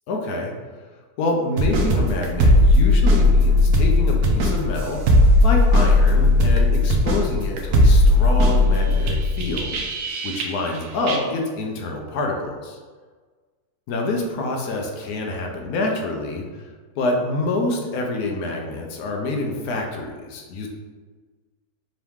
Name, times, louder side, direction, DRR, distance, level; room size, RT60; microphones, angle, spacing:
voice 1, 0.1-0.5 1.2-9.7 10.2-12.8 13.9-20.7, left 2 dB, 75° left, 1 dB, 1.1 m, -27 dB
sound 1, 1.6-10.8 11.1-11.2, left 1 dB, 75° right, 1.1 m, -17 dB
3.7 x 2.9 x 3.4 m, 1.4 s
omnidirectional pair, 1.7 m